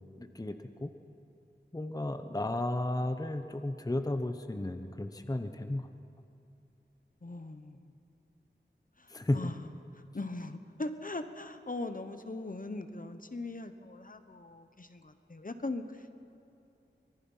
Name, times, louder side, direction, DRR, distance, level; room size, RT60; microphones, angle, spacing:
voice 1, 0.2-0.5 0.8-0.9 1.7-5.9 9.1-9.5, left 1 dB, 20° left, 7 dB, 0.9 m, -33 dB
voice 2, 7.2-7.9 9.0-9.7 10.1-16.1, left 2 dB, 45° left, 9 dB, 1.1 m, -40 dB
24.5 x 19.5 x 5.6 m, 2.7 s
wide cardioid pair, 60°, 19 cm